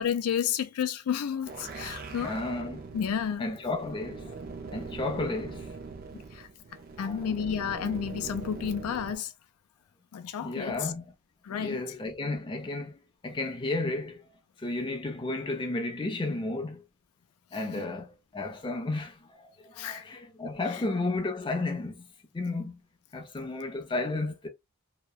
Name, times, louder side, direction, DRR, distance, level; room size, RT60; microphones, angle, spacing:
voice 1, 0.0-2.3 2.9-3.5 6.1-6.5 7.0-9.3 10.1-10.9 11.5-11.8 17.7-17.8 19.8-20.0, left 8 dB, 90° left, 0.4 m, -31 dB
sound 1, 1.3-9.2, right 4 dB, 40° right, 0.4 m, -42 dB
voice 2, 2.2-2.8 3.4-4.4 4.7-5.7 7.0-7.3 10.4-11.0 11.5-14.2 14.6-16.8 17.5-22.0 22.3-22.8 23.1-24.5, left 2 dB, 20° left, 0.4 m, -33 dB
2.8 x 2.1 x 2.2 m
head